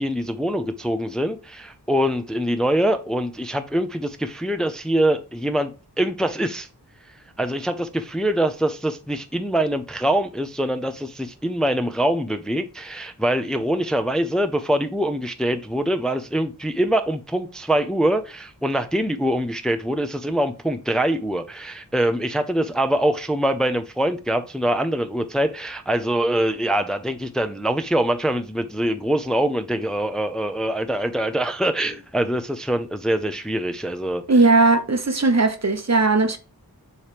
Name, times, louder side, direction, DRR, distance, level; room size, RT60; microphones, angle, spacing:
voice 1, 0.0-5.7 6.0-6.7 7.4-34.2, right 1 dB, ahead, 0.6 m, -24 dB
voice 2, 34.3-36.4, right 3 dB, 45° right, 0.9 m, -18 dB
7.1 x 3.2 x 5.0 m
wide cardioid pair, 65°, 37 cm